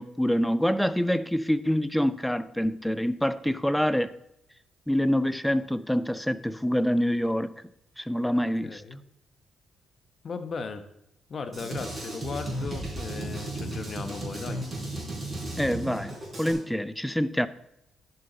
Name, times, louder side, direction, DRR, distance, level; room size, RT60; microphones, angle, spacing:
voice 1, 0.0-4.1 4.9-7.5 8.0-8.8 15.6-17.5, equal, 5° left, 0.5 m, -26 dB
voice 2, 8.6-9.0 10.2-10.8 11.3-14.6, left 4 dB, 45° left, 1.0 m, -36 dB
Drum kit, 11.5-16.5, right 1 dB, 25° right, 4.1 m, -35 dB
11.0 x 7.0 x 3.9 m
cardioid pair, 90°, 0 cm